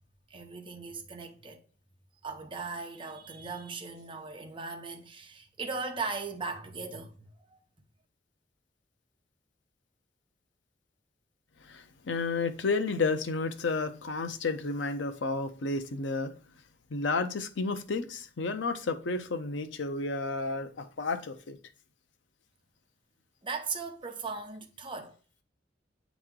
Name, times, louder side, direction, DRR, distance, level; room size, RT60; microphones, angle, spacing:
voice 1, 0.3-1.6 2.2-7.6 23.4-25.1, right 4 dB, 30° right, 0.7 m, -38 dB
voice 2, 11.7-16.3 16.9-21.6, left 3 dB, 75° left, 0.6 m, -31 dB
8.8 x 3.0 x 3.7 m
head